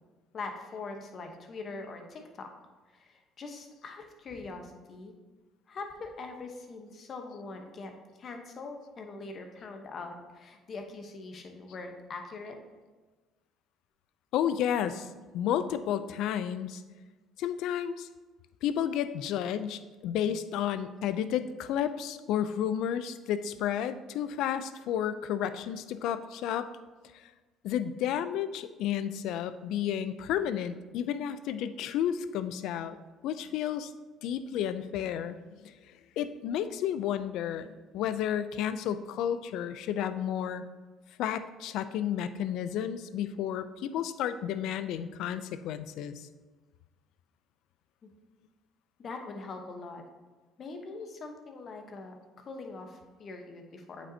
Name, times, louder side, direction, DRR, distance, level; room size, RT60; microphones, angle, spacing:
voice 1, 0.3-2.5 2.9-5.1 5.7-7.9 8.2-12.6 48.0-48.1 49.0-50.0 50.6-54.1, left 3 dB, 45° left, 4 dB, 0.9 m, -42 dB
voice 2, 14.3-15.1 15.3-16.8 17.4-18.1 18.6-26.7 27.1-27.3 27.6-33.0 33.2-33.9 34.2-35.7 36.2-40.6 41.2-46.3, left 9 dB, 75° left, 12 dB, 0.4 m, -32 dB
8.4 x 5.1 x 2.8 m, 1.3 s
supercardioid pair, 90°, 0 cm